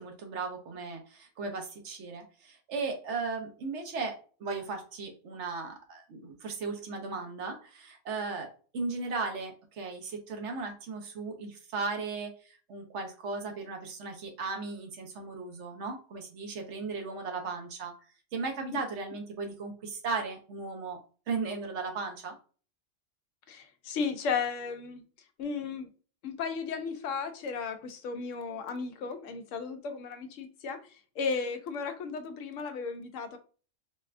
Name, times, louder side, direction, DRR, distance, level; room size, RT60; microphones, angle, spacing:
voice 1, 0.0-17.9 18.3-21.0 21.3-22.3, right 4 dB, 70° right, 1.0 m, -36 dB
voice 2, 23.5-25.0 25.4-25.9 26.2-33.4, left 5 dB, 85° left, 0.9 m, -35 dB
4.0 x 2.2 x 2.4 m
omnidirectional pair, 1.3 m